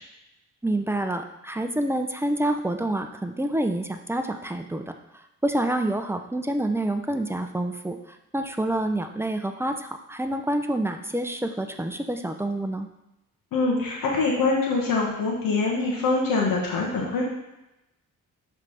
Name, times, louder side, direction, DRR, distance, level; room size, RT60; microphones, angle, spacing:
voice 1, 0.6-4.8 5.1-8.0 8.3-12.9, right 1 dB, 10° right, 6 dB, 0.5 m, -27 dB
voice 2, 13.5-17.2, left 3 dB, 80° left, -2 dB, 1.1 m, -24 dB
5.7 x 3.4 x 4.9 m, 0.92 s
cardioid pair, 70°, 33 cm